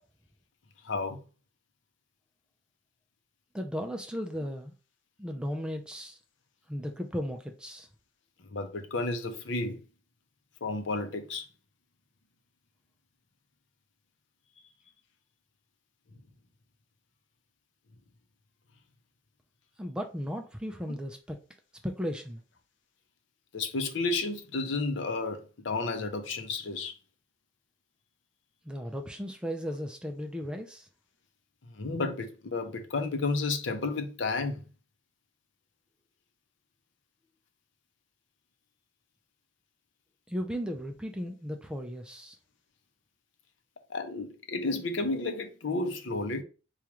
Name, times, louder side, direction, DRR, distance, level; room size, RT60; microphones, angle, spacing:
voice 1, 0.8-1.2 8.5-9.8 10.6-11.4 23.5-26.9 31.7-34.6 43.9-46.4, left 3 dB, 70° left, 0.7 m, -32 dB
voice 2, 3.5-4.7 5.2-6.2 6.7-7.9 19.8-21.4 21.8-22.4 28.7-30.9 40.3-42.4, equal, 5° right, 0.3 m, -36 dB
4.7 x 2.4 x 2.8 m
head